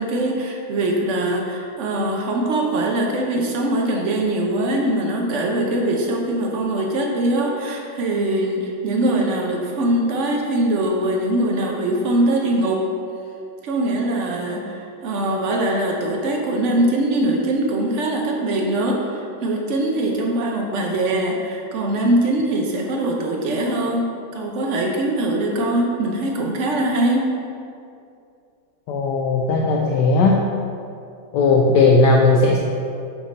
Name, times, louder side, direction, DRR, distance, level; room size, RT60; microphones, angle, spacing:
voice 1, 0.0-12.9 13.6-27.3, right 1 dB, 85° right, 0 dB, 0.6 m, -22 dB
voice 2, 28.9-30.4 31.3-32.6, left 3 dB, 70° left, 0 dB, 1.1 m, -16 dB
7.2 x 3.7 x 5.2 m, 2.5 s
omnidirectional pair, 2.2 m